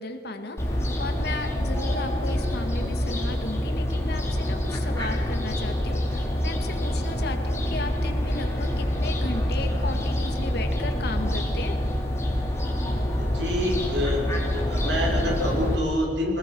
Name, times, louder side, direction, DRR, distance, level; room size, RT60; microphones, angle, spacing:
voice 1, 0.0-11.8, left 2 dB, 65° left, 5 dB, 2.2 m, -35 dB
Fowl, 0.6-15.8, equal, 15° left, 3.5 m, -26 dB
voice 2, 13.1-14.2 14.6-16.4, left 1 dB, 90° right, -1 dB, 5.4 m, -27 dB
22.5 x 20.0 x 6.3 m, 2.4 s
head